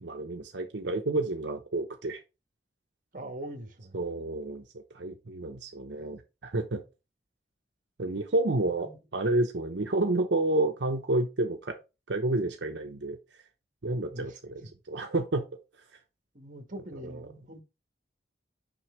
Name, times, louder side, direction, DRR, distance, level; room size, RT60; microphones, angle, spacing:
voice 1, 0.0-2.2 3.9-4.6 4.9-6.8 8.0-11.8 12.1-13.2 13.8-14.6 14.9-15.4 16.9-17.2, right 2 dB, 80° right, 0.9 m, -30 dB
voice 2, 3.1-4.0 8.8-9.0 14.1-14.7 16.3-17.6, right 1 dB, 50° right, 1.5 m, -42 dB
6.2 x 5.6 x 3.2 m
head